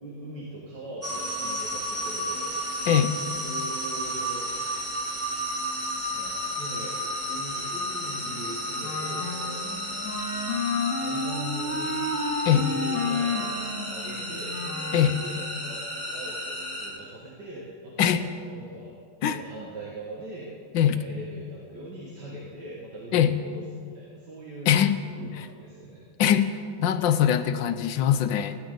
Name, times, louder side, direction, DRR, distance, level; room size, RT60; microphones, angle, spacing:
voice 1, 0.0-2.9 3.4-4.5 6.1-9.6 10.9-11.9 12.5-14.6 14.9-18.1 18.5-18.9 19.3-20.5 20.8-24.7 25.2-26.0, right 1 dB, 60° right, -5 dB, 2.5 m, -41 dB
sound 1, 1.0-16.9, equal, 5° right, 3.1 m, -32 dB
Wind instrument woodwind instrument, 8.8-15.4, left 3 dB, 50° left, 2.8 m, -31 dB
voice 2, 24.7-25.0 26.2-26.5 26.8-28.6, left 9 dB, 80° left, 10 dB, 1.5 m, -22 dB
19.5 x 16.0 x 3.9 m, 2.3 s
omnidirectional pair, 2.0 m